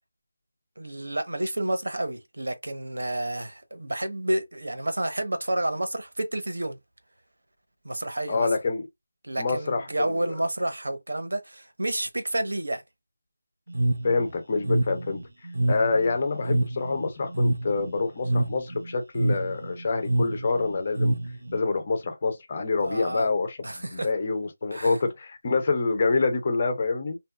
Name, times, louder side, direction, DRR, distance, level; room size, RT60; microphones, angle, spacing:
voice 1, 0.8-6.8 7.8-8.5 9.2-12.8 22.8-23.3 23.6-24.1 24.7-25.0, right 1 dB, 80° right, 0.8 m, -30 dB
voice 2, 8.3-8.8 9.4-10.4 14.0-15.2 15.7-21.2 21.5-27.2, left 3 dB, 20° left, 0.3 m, -26 dB
sound 1, 13.7-21.6, right 1 dB, 55° right, 0.4 m, -27 dB
2.7 x 2.1 x 2.3 m
figure-of-eight pair, 180°, 0 cm